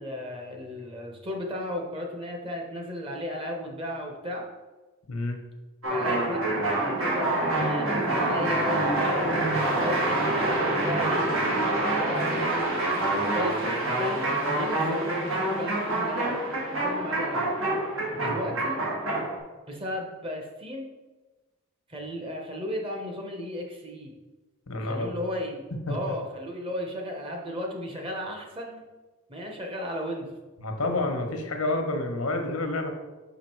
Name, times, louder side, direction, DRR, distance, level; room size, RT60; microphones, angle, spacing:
voice 1, 0.0-4.4 5.9-6.5 6.8-9.2 9.8-11.3 11.9-12.7 13.2-16.4 16.8-17.5 18.1-18.9 19.7-20.9 21.9-24.1 24.8-28.9 29.3-30.3, left 1 dB, 25° right, 1 dB, 1.0 m, -34 dB
voice 2, 5.1-5.4 18.2-18.4 24.7-25.1 25.9-26.1 30.6-32.9, left 2 dB, 90° left, 4 dB, 1.1 m, -29 dB
sound 1, 5.8-19.4, right 1 dB, 75° right, 2.1 m, -26 dB
5.8 x 5.1 x 4.5 m, 1.2 s
head